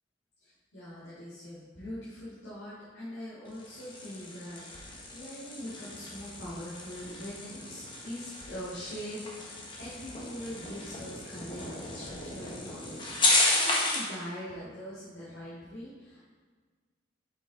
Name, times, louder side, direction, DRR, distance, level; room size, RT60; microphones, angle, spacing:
voice 1, 0.4-16.3, equal, 80° left, -10 dB, 1.9 m, -43 dB
sound 1, 3.5-14.2, left 2 dB, 25° left, 1.2 m, -33 dB
7.3 x 5.6 x 3.9 m, 1.5 s
head